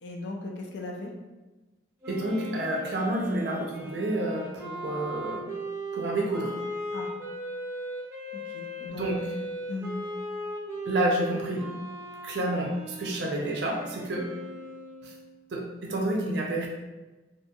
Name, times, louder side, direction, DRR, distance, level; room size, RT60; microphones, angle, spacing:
voice 1, 0.0-1.1 6.9-7.1 8.3-9.3 9.7-9.9, left 2 dB, 75° left, 1 dB, 0.4 m, -38 dB
Wind instrument woodwind instrument, 2.0-15.4, right 1 dB, 15° right, 0.6 m, -38 dB
voice 2, 2.1-5.4 5.9-6.6 8.9-9.2 10.9-11.7 12.2-14.3 15.0-15.1 15.5-16.7, right 1 dB, 65° right, -1 dB, 0.4 m, -29 dB
2.5 x 2.2 x 2.8 m, 1.1 s
head